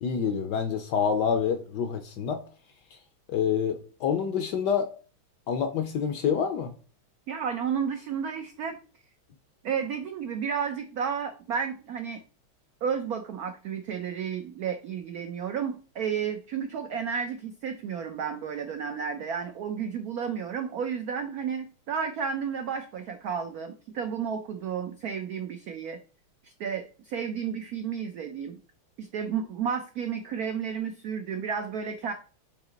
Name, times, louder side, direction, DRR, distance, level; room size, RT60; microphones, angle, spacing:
voice 1, 0.0-2.4 3.3-4.9 5.5-6.7, left 7 dB, 70° left, 1.1 m, -27 dB
voice 2, 7.3-8.8 9.6-12.2 12.8-26.0 26.4-28.6 29.0-32.1, right 7 dB, 80° right, 0.8 m, -32 dB
8.5 x 2.9 x 3.8 m
omnidirectional pair, 2.3 m